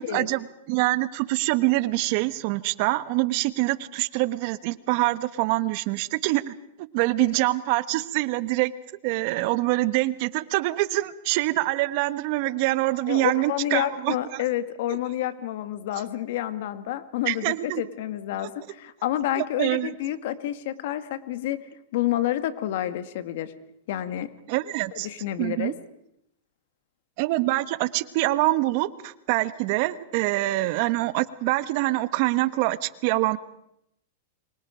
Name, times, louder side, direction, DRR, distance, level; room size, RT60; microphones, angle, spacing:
voice 1, 0.0-6.5 6.9-8.7 9.0-14.4 17.3-17.8 19.4-19.9 24.5-25.1 25.4-25.7 27.2-33.4, right 19 dB, 50° right, 14 dB, 1.2 m, -25 dB
voice 2, 13.1-21.6 21.9-23.5 23.9-24.3 25.0-25.7, left 12 dB, 65° left, 12 dB, 1.8 m, -29 dB
28.5 x 25.0 x 5.1 m, 0.77 s
hypercardioid pair, 140°, 0 cm